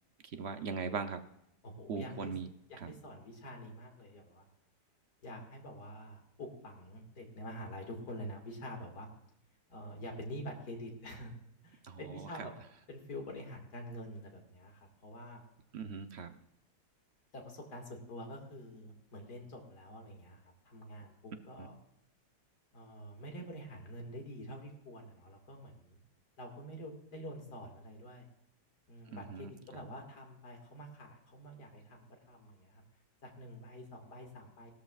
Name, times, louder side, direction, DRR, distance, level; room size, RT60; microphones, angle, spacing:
voice 1, 0.2-1.2 1.9-2.5 2.8-2.9 11.8-12.5 15.7-16.3 21.6-21.7 29.1-29.8, right 5 dB, 55° right, 8 dB, 0.8 m, -40 dB
voice 2, 1.6-2.3 2.7-4.5 5.2-9.1 9.7-11.3 11.6-12.5 12.9-15.4 17.3-21.7 22.7-26.0 26.4-28.3 28.9-32.8 33.2-34.7, equal, 80° left, 1 dB, 2.7 m, -47 dB
17.5 x 13.0 x 2.4 m, 0.79 s
omnidirectional pair, 1.7 m